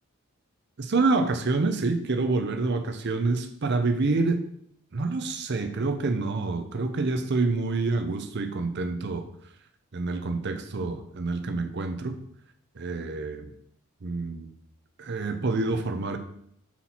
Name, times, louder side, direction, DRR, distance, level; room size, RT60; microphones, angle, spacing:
voice 1, 0.8-4.4 4.9-9.3 9.9-12.1 12.8-13.5 14.0-14.5 15.0-16.2, right 3 dB, 50° right, 7 dB, 0.6 m, -27 dB
5.7 x 4.3 x 4.2 m, 0.70 s
head